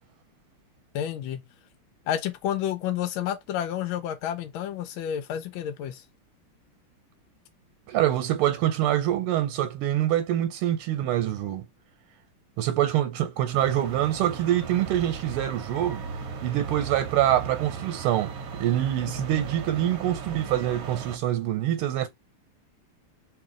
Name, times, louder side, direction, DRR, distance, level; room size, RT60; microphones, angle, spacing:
voice 1, 0.9-1.4 2.1-6.0 19.2-19.5, left 10 dB, 75° left, 1.4 m, -30 dB
voice 2, 7.9-11.6 12.6-16.0 16.4-22.1, right 12 dB, 90° right, 1.5 m, -25 dB
sound 1, 13.5-21.2, right 6 dB, 60° right, 1.0 m, -37 dB
3.1 x 3.1 x 3.7 m
omnidirectional pair, 2.4 m